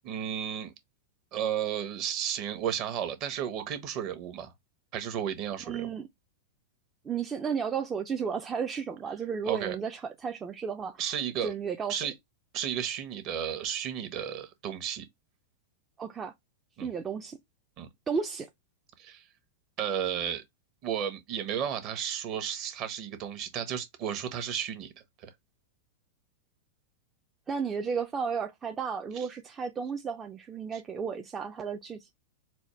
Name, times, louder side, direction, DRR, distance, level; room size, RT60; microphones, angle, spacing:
voice 1, 0.0-0.7 1.3-4.5 4.9-5.9 9.4-9.8 11.0-11.5 11.9-12.1 12.5-15.1 16.8-16.9 17.8-17.9 19.0-19.2 19.8-20.4 20.8-24.9 25.2-25.3 29.1-29.3 30.7-30.8, right 9 dB, 45° right, 1.0 m, -33 dB
voice 2, 5.6-6.1 7.0-11.1 11.4-11.9 16.0-16.3 16.8-17.4 18.1-18.5 27.5-32.1, right 6 dB, 20° right, 0.4 m, -33 dB
4.1 x 2.1 x 3.1 m
hypercardioid pair, 120°, 0 cm